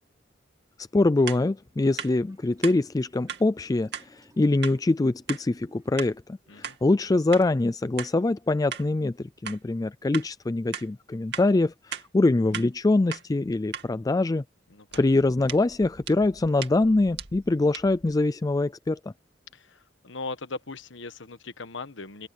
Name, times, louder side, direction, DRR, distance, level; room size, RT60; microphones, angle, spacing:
voice 1, 0.9-14.4 15.0-19.0, left 2 dB, 20° left, 0.4 m, -24 dB
sound 1, 1.3-1.4 2.0-2.1 2.6-2.8 3.3-3.4 3.9-4.1 4.6-4.8 5.3-5.4 6.0-6.1 6.6-6.8 7.3-7.5 8.0-8.1 8.7-8.9 9.5-9.6 10.1-10.3 10.7-10.9 11.3-11.5 11.9-12.1 12.5-12.7 13.1-13.2 13.7-13.9 14.9-18.2, right 8 dB, 65° right, 2.6 m, -37 dB
sound 2, 1.8-7.3, right 1 dB, 20° right, 4.9 m, -62 dB
voice 2, 19.5-22.3, left 3 dB, 85° left, 1.3 m, -39 dB
head